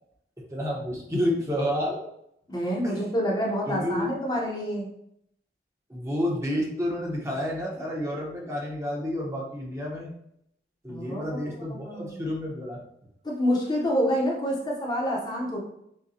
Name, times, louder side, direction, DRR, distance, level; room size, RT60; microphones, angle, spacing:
voice 1, 0.5-2.0 2.8-3.0 3.7-4.1 5.9-10.1 10.8-12.8, equal, 15° right, -3 dB, 0.8 m, -30 dB
voice 2, 2.5-4.9 10.9-11.4 11.7-12.2 13.2-15.6, equal, 25° left, -2 dB, 0.7 m, -27 dB
6.5 x 2.2 x 2.8 m, 0.74 s
head